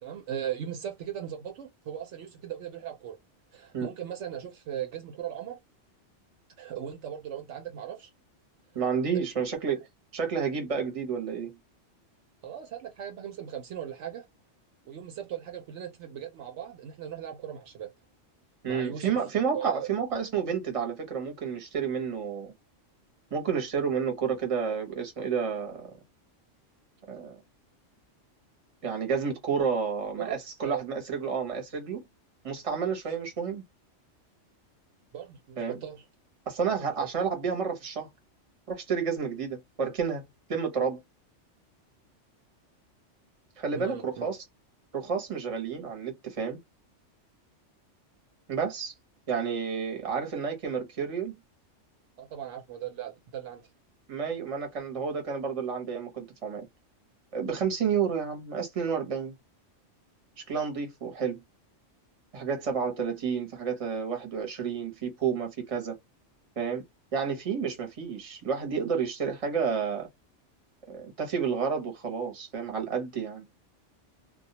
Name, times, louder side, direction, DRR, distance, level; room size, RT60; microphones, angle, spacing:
voice 1, 0.0-3.2 3.5-5.6 6.6-8.1 9.7-9.8 12.4-14.2 14.9-17.9 18.7-19.2 19.5-19.9 30.2-30.4 30.6-30.8 35.1-36.0 37.0-37.3 43.7-44.3 52.2-53.6, right 9 dB, 70° right, 0.9 m, -38 dB
voice 2, 8.7-9.8 10.1-11.6 18.6-22.5 23.3-25.9 27.1-27.4 28.8-32.0 32.4-33.6 35.6-35.8 36.5-38.1 38.7-40.2 40.5-41.0 43.6-44.4 44.9-46.6 48.5-48.9 49.3-51.3 54.1-56.7 57.3-59.3 60.4-61.4 62.3-66.0 66.6-66.8 67.1-70.1 70.9-73.5, right 6 dB, 30° right, 0.8 m, -30 dB
2.2 x 2.2 x 2.7 m
omnidirectional pair, 1.3 m